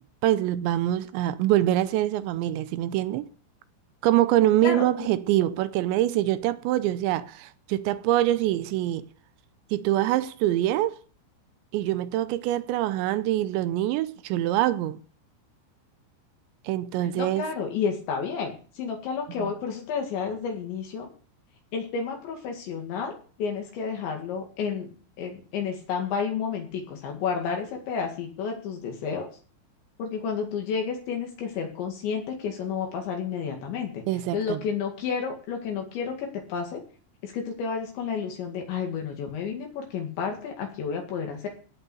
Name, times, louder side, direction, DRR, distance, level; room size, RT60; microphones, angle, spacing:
voice 1, 0.2-3.3 4.0-9.0 9.7-11.0 11.7-15.0 16.7-17.5 19.4-19.5 34.1-34.6, right 14 dB, 80° right, 2.8 m, -24 dB
voice 2, 17.2-21.1 21.7-29.3 30.0-34.0 34.3-36.8 37.2-41.5, left 6 dB, 70° left, 4.2 m, -31 dB
17.0 x 5.8 x 7.7 m
omnidirectional pair, 5.7 m